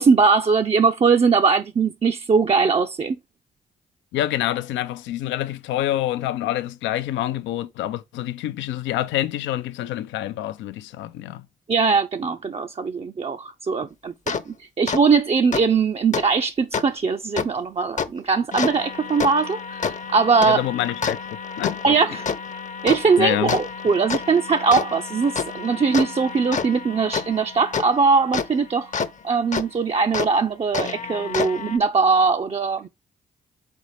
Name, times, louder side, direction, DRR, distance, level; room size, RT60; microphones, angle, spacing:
voice 1, 0.0-3.2 11.7-20.6 21.8-22.3 22.8-28.9 29.2-32.9, right 5 dB, 30° right, 0.5 m, -20 dB
voice 2, 4.1-11.5 20.4-21.2 21.6-22.0 23.2-23.6, left 13 dB, 75° left, 0.5 m, -26 dB
sound 1, 14.3-14.4 14.9-15.0 15.5-15.6 16.1-16.2 16.7-16.8 17.4-17.5 18.0-18.1 18.5-29.1 29.5-29.6 30.1-30.3 30.7-31.8, left 5 dB, 40° left, 0.7 m, -29 dB
4.2 x 4.0 x 3.1 m
hypercardioid pair, 40°, 19 cm